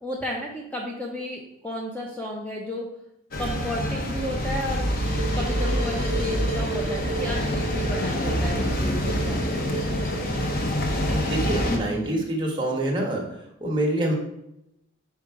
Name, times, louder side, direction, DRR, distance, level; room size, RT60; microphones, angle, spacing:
voice 1, 0.0-2.8 3.4-4.9 5.4-9.8, left 1 dB, 5° left, -1 dB, 0.5 m, -33 dB
sound 1, 3.3-11.8, equal, 45° left, 0.8 m, -26 dB
sound 2, 5.0-12.2, right 2 dB, 65° left, 2.3 m, -34 dB
voice 2, 11.3-13.2 13.6-14.1, right 1 dB, 20° right, -2 dB, 1.2 m, -25 dB
5.2 x 4.7 x 4.6 m, 0.84 s
head